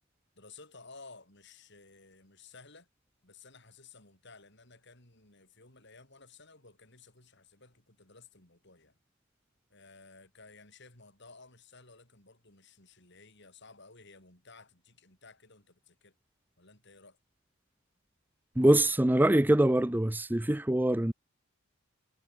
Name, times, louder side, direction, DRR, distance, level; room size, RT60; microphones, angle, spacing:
voice 1, 0.4-2.9 3.2-9.0 9.7-16.1 16.6-17.2, left 3 dB, 55° left, 7.4 m, -55 dB
voice 2, 18.6-21.1, right 1 dB, 10° right, 0.5 m, -24 dB
head